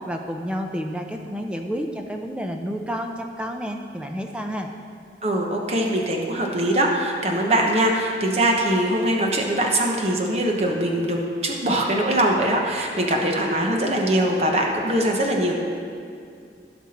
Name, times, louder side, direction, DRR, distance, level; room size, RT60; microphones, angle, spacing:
voice 1, 0.0-4.7, equal, 5° right, 3 dB, 0.6 m, -30 dB
voice 2, 5.2-11.2 11.4-15.6, right 1 dB, 35° right, 0 dB, 1.0 m, -22 dB
15.5 x 6.0 x 4.3 m, 2.4 s
head